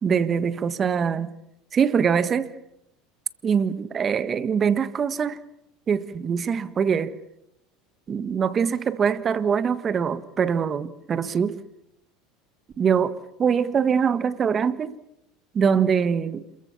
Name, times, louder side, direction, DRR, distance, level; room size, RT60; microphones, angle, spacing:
voice 1, 0.0-1.3 1.7-2.5 3.4-5.4 5.9-7.2 8.1-11.6 12.8-14.9 15.5-16.5, right 7 dB, 35° right, 1.6 m, -23 dB
27.5 x 22.5 x 7.2 m
hypercardioid pair, 90°, 0 cm